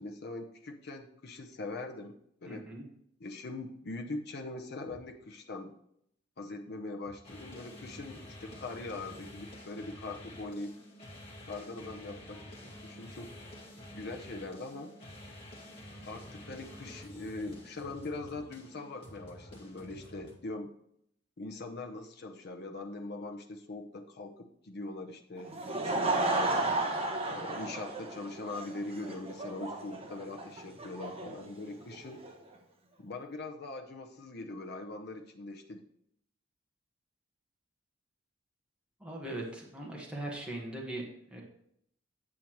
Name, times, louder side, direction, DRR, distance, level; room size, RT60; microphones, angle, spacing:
voice 1, 0.0-2.2 2.4-2.7 3.2-5.7 6.4-10.8 11.4-13.3 13.9-15.0 16.0-20.7 21.4-26.6 27.3-32.2 33.0-35.8, left 2 dB, 55° left, 3 dB, 0.7 m, -42 dB
voice 2, 2.4-2.8 39.0-41.4, right 1 dB, 5° right, -2 dB, 1.5 m, -40 dB
sound 1, 7.2-20.4, left 1 dB, 30° left, 2.1 m, -49 dB
Laughter / Crowd, 25.4-32.3, right 2 dB, 30° right, 1.0 m, -33 dB
8.6 x 7.9 x 3.0 m, 0.71 s
head